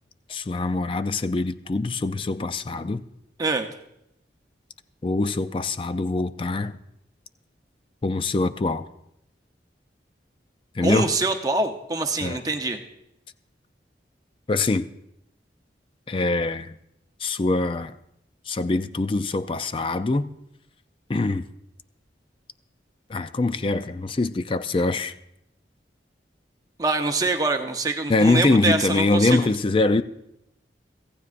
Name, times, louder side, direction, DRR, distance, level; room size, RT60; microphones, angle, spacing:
voice 1, 0.3-3.0 5.0-6.8 8.0-8.9 10.7-11.1 12.2-12.4 14.5-14.9 16.1-16.7 17.2-18.0 18.5-20.3 21.1-21.5 23.1-25.1 28.1-30.0, left 3 dB, 30° left, 0.4 m, -23 dB
voice 2, 10.8-12.8 26.8-29.4, right 3 dB, 20° right, 0.8 m, -24 dB
25.0 x 15.0 x 2.5 m
head